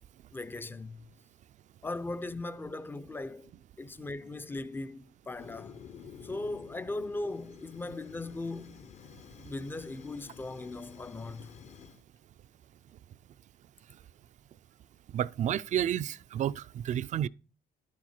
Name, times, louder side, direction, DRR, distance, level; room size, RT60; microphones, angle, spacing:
voice 1, 0.3-1.1 1.8-3.5 3.8-5.8 6.2-8.9 9.4-11.6, left 2 dB, 10° left, 0.5 m, -38 dB
Fire, 5.4-12.0, left 7 dB, 45° left, 0.8 m, -51 dB
voice 2, 15.1-17.3, right 10 dB, 45° right, 0.4 m, -30 dB
11.5 x 7.4 x 4.3 m
cardioid pair, 110°, 17 cm